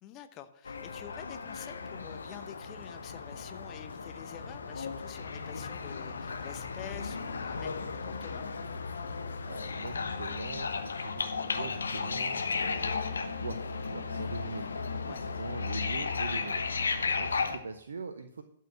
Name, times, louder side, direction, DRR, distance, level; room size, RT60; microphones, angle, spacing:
voice 1, 0.0-8.4 15.1-15.2, left 11 dB, 30° left, 10 dB, 0.9 m, -48 dB
sound 1, 0.6-17.6, left 4 dB, 65° left, 1.1 m, -35 dB
voice 2, 9.4-16.6 17.0-18.4, right 4 dB, 65° right, 9 dB, 0.8 m, -43 dB
12.0 x 5.7 x 7.2 m, 0.79 s
figure-of-eight pair, 115°, 0 cm